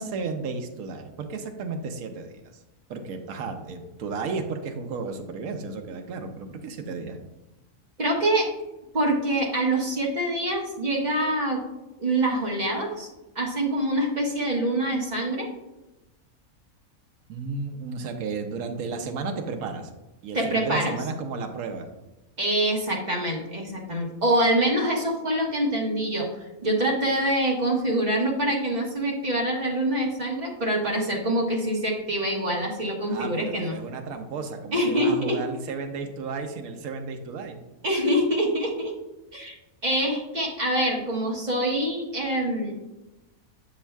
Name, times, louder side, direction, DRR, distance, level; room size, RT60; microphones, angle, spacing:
voice 1, 0.0-2.3 2.9-7.2 17.3-19.9 20.2-21.9 33.1-37.6, right 4 dB, 75° right, 5 dB, 1.1 m, -33 dB
voice 2, 8.0-8.5 8.9-11.6 12.0-13.1 13.3-15.5 20.3-21.0 22.4-26.3 26.6-33.8 34.7-35.4 37.8-38.9 39.3-39.5 39.8-42.8, right 1 dB, 30° right, -1 dB, 1.3 m, -25 dB
7.2 x 7.1 x 2.3 m, 1.0 s
omnidirectional pair, 1.5 m